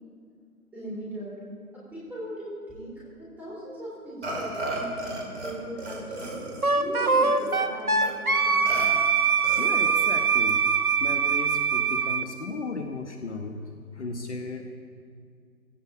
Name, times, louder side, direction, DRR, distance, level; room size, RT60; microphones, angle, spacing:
voice 1, 0.7-1.4 1.7-8.7, right 1 dB, 5° right, -7 dB, 3.6 m, -39 dB
Burping eructation, 4.2-5.5 5.8-7.6 8.0-8.1 8.7-8.9 9.4-10.0, right 1 dB, 45° right, 4.9 m, -35 dB
Wind instrument woodwind instrument, 6.6-12.3, right 5 dB, 70° right, 1.6 m, -23 dB
voice 2, 9.6-13.6 13.9-14.7, left 3 dB, 50° left, 5 dB, 1.4 m, -35 dB
16.0 x 15.5 x 5.1 m, 2.2 s
figure-of-eight pair, 150°, 45 cm